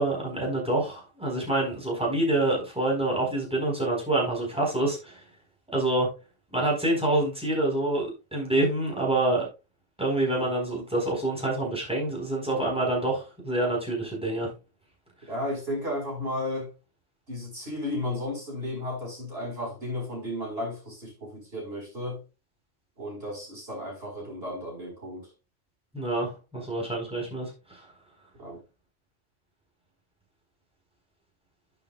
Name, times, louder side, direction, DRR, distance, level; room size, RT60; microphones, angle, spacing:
voice 1, 0.0-5.2 5.7-6.1 6.5-9.5 10.0-14.5 25.9-27.9, right 2 dB, 5° right, 4.3 m, -27 dB
voice 2, 15.2-16.7 17.3-22.2 23.0-25.3 28.4-28.6, left 1 dB, 65° right, 5.1 m, -34 dB
11.5 x 7.0 x 2.4 m
omnidirectional pair, 1.1 m